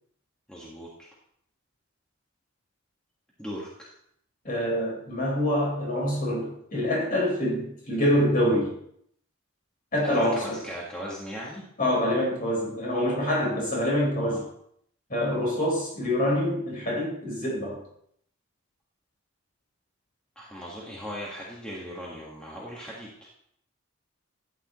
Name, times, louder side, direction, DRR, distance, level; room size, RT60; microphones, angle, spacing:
voice 1, 0.5-1.1 3.4-3.9 10.1-11.6 14.2-14.4 20.3-23.3, equal, 5° left, -5 dB, 1.7 m, -38 dB
voice 2, 4.4-8.7 9.9-10.6 11.8-14.4 15.1-17.8, left 1 dB, 40° left, -3 dB, 4.7 m, -26 dB
13.0 x 9.1 x 3.1 m, 0.69 s
head